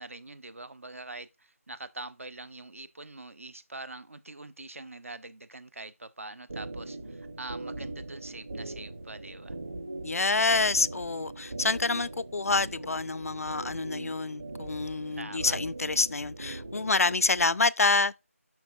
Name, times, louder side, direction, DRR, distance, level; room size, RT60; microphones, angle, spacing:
voice 1, 0.0-9.5 15.2-15.6, right 2 dB, 65° right, 0.7 m, -44 dB
sound 1, 6.5-17.4, right 2 dB, 35° right, 1.1 m, -40 dB
voice 2, 10.0-18.1, left 3 dB, 75° left, 0.4 m, -27 dB
7.5 x 5.9 x 2.6 m
figure-of-eight pair, 175°, 8 cm